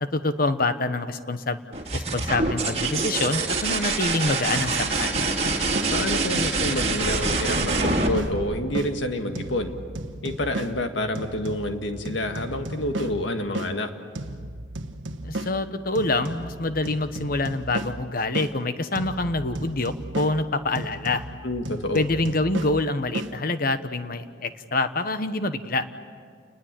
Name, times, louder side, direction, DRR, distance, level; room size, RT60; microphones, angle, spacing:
voice 1, 0.0-1.6 1.9-5.2 15.2-21.2 21.9-25.8, left 2 dB, 50° left, 10 dB, 1.1 m, -26 dB
sound 1, 1.7-9.3 11.1-11.7, right 3 dB, 35° right, 2.3 m, -26 dB
sound 2, 4.5-8.9 9.3-13.7 14.1-18.5 18.9-23.3, right 1 dB, 90° right, 1.2 m, -35 dB
voice 2, 5.9-9.7 10.2-13.9 21.4-22.0, left 1 dB, 75° left, 6 dB, 1.8 m, -28 dB
30.0 x 20.5 x 7.6 m, 2.1 s
head